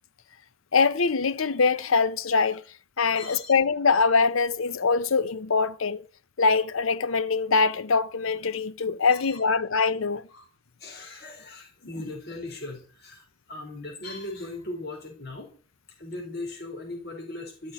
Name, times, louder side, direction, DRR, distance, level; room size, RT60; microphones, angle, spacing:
voice 1, 0.7-2.6 3.0-6.0 6.4-10.2, left 4 dB, 75° left, 0.8 m, -23 dB
voice 2, 3.1-3.5 9.1-9.4 10.3-10.4 10.8-15.5 16.0-17.7, left 2 dB, 50° left, 4.2 m, -38 dB
14.0 x 6.2 x 9.6 m
head